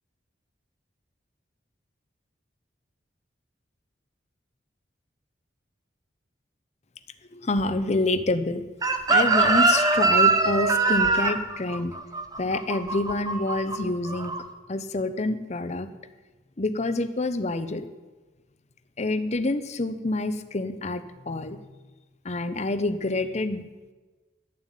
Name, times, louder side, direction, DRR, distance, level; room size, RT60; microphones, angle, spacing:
voice 1, 7.3-8.6 9.1-11.9 12.4-14.3 14.7-15.9 16.6-17.9 19.0-21.6 22.2-23.7, left 2 dB, 35° left, 11 dB, 0.8 m, -27 dB
Chicken rooster, 8.8-13.8 14.1-14.4, right 3 dB, 20° right, 0.9 m, -22 dB
11.0 x 7.3 x 9.1 m, 1.3 s
head